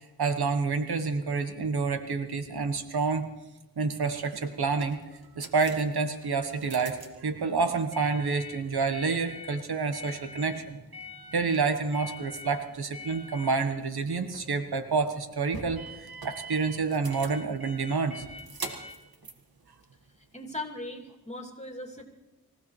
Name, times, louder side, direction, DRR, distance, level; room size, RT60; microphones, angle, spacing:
voice 1, 0.0-3.3 3.8-5.0 5.3-10.8 11.3-18.2, right 4 dB, 85° right, 7 dB, 1.3 m, -28 dB
sound 1, 4.0-20.4, equal, 70° right, 1.9 m, -45 dB
voice 2, 20.2-22.0, left 2 dB, 20° left, 2 dB, 2.8 m, -39 dB
25.5 x 15.5 x 3.3 m, 1.1 s
cardioid pair, 45°, 37 cm